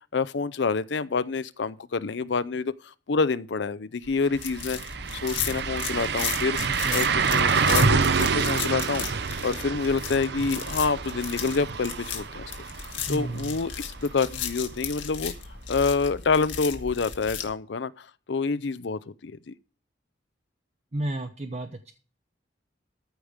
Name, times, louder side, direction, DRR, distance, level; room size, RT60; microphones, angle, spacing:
voice 1, 0.1-4.8 5.2-6.6 6.9-9.1 9.4-12.5 13.1-15.3 15.7-19.5, left 4 dB, 70° left, 0.5 m, -27 dB
sound 1, 4.1-4.2 4.5-14.3 14.6-14.7 17.5-17.6, right 5 dB, 60° right, 0.7 m, -27 dB
sound 2, 4.3-17.5, left 8 dB, 85° left, 1.9 m, -35 dB
voice 2, 6.7-7.0 13.1-13.6 20.9-21.9, right 1 dB, 35° right, 0.8 m, -33 dB
14.0 x 5.1 x 6.5 m
head